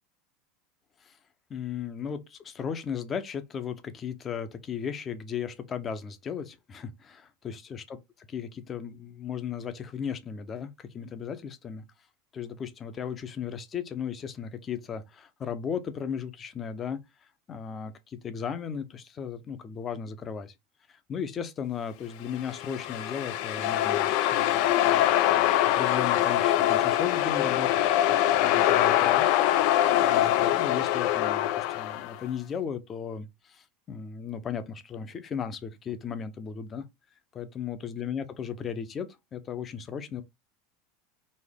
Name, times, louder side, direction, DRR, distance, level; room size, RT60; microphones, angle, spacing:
voice 1, 1.5-11.8 12.3-17.0 17.5-20.5 20.9-25.0 25.3-29.3 29.9-36.9 37.3-40.2, left 7 dB, 30° left, 0.8 m, -36 dB
sound 1, 22.3-32.2, left 13 dB, 65° left, 0.4 m, -24 dB
4.2 x 2.7 x 3.6 m
supercardioid pair, 110°, 0 cm